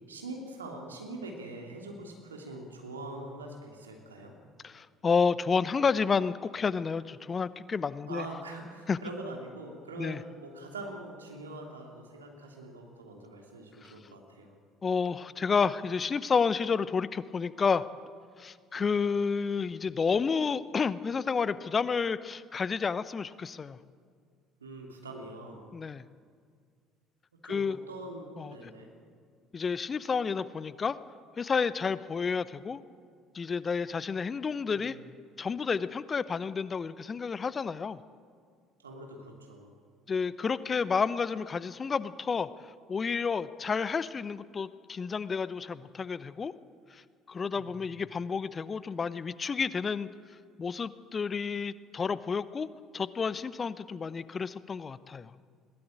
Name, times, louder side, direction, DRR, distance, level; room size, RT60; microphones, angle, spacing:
voice 1, 0.0-4.3 8.0-14.5 18.7-18.9 24.6-25.7 27.4-28.9 34.7-35.0 38.8-39.7 47.5-47.7, right 2 dB, 85° right, 1 dB, 2.9 m, -43 dB
voice 2, 4.6-8.2 8.9-9.0 10.0-10.2 13.8-13.9 14.8-17.8 18.4-23.8 25.7-26.0 27.4-27.8 28.4-28.6 29.5-31.0 31.4-32.8 33.3-34.9 35.4-38.0 40.1-42.5 42.9-46.5 46.9-47.0 47.3-50.1 50.6-52.7 52.9-55.3, left 5 dB, 30° left, 17 dB, 0.8 m, -30 dB
21.0 x 18.0 x 8.9 m, 2.1 s
figure-of-eight pair, 60°, 0 cm